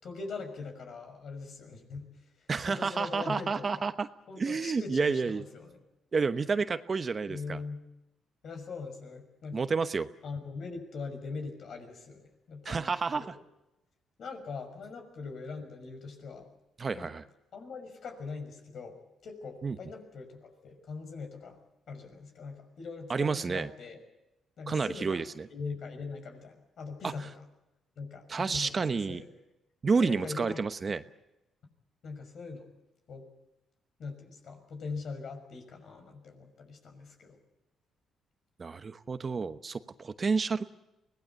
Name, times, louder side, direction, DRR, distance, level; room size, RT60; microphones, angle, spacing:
voice 1, 0.0-2.1 2.4-3.8 4.3-5.8 7.3-7.8 8.4-9.7 10.2-13.4 14.2-16.5 16.9-17.1 17.5-21.6 21.9-24.0 24.6-25.2 25.5-27.3 28.0-29.3 30.0-30.6 32.0-32.7 33.1-33.3 34.0-37.4, left 4 dB, 60° left, 5 dB, 6.0 m, -42 dB
voice 2, 2.5-4.1 4.4-5.4 6.1-7.6 9.5-10.1 12.6-13.3 16.8-17.2 19.6-19.8 23.1-23.7 24.7-25.5 27.0-27.1 28.3-29.2 29.8-31.0 38.6-40.7, right 4 dB, 35° right, 11 dB, 1.0 m, -30 dB
24.0 x 19.0 x 8.2 m, 0.93 s
cardioid pair, 90°, 0 cm